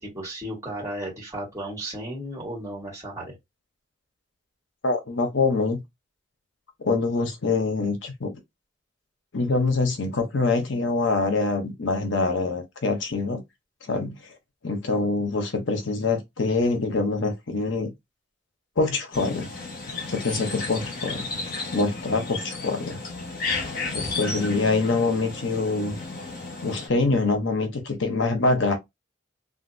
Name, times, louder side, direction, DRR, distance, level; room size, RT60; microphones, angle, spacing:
voice 1, 0.0-3.3, right 1 dB, 15° right, 2.0 m, -34 dB
voice 2, 4.8-5.8 6.8-8.3 9.3-13.4 13.9-14.1 14.6-17.9 18.8-19.5 20.1-21.3 21.7-23.0 23.9-26.0 26.6-28.8, left 3 dB, 65° left, 0.7 m, -25 dB
sound 1, 19.1-26.9, left 3 dB, 45° left, 1.1 m, -33 dB
3.4 x 2.5 x 2.6 m
head